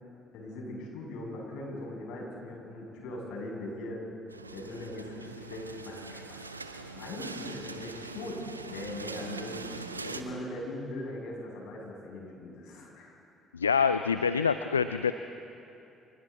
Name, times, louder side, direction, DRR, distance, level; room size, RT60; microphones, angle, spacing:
voice 1, 0.3-4.0 4.5-9.7 10.0-13.2, left 1 dB, 65° left, -1 dB, 7.0 m, -40 dB
sound 1, 4.3-10.2, right 3 dB, 90° right, 0.8 m, -42 dB
voice 2, 13.5-15.1, left 6 dB, 85° left, 11 dB, 0.4 m, -26 dB
30.0 x 27.0 x 4.2 m, 2.8 s
figure-of-eight pair, 50°, 0 cm